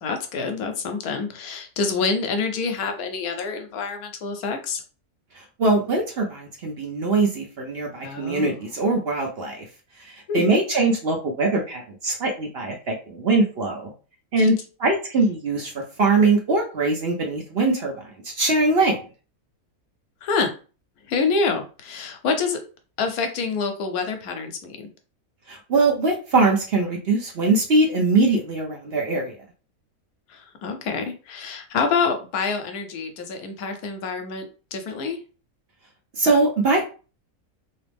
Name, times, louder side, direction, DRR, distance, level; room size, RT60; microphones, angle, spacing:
voice 1, 0.0-4.8 8.0-8.6 10.3-10.4 14.4-14.5 20.2-20.5 21.1-22.6 23.0-24.9 30.3-35.2, left 4 dB, 80° left, 6 dB, 1.2 m, -27 dB
voice 2, 5.6-9.6 10.3-13.9 14.3-14.5 14.8-17.9 18.2-19.0 25.5-29.3 36.2-36.9, right 3 dB, 50° right, 1 dB, 0.9 m, -22 dB
3.0 x 2.9 x 3.4 m, 0.35 s
omnidirectional pair, 1.6 m